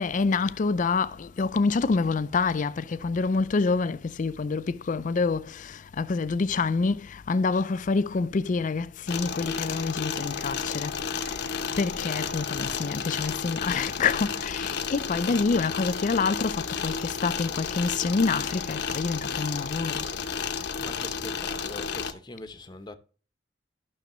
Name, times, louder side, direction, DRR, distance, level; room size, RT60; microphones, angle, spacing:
voice 1, 0.0-10.9 11.3-11.4 11.8-20.1, left 4 dB, 40° left, 0.4 m, -27 dB
sound 1, 9.1-22.1, left 6 dB, 60° left, 0.8 m, -32 dB
voice 2, 20.8-23.0, left 2 dB, 20° left, 0.8 m, -42 dB
11.5 x 6.3 x 3.0 m
head